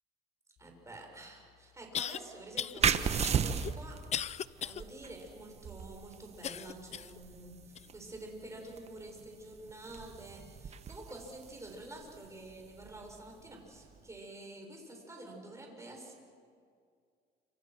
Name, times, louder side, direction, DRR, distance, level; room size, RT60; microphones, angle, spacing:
voice 1, 0.6-4.0 4.6-16.1, right 2 dB, 15° right, 1 dB, 6.8 m, -48 dB
sound 1, 0.9-1.0 1.9-2.2 2.6-2.8 3.2-4.8 5.3-5.4 6.4-7.2 7.7-7.9 8.6-8.7, left 9 dB, 40° left, 0.6 m, -37 dB
sound 2, 2.8-14.1, right 7 dB, 40° right, 1.2 m, -37 dB
28.5 x 27.0 x 6.2 m, 2.2 s
cardioid pair, 110°, 17 cm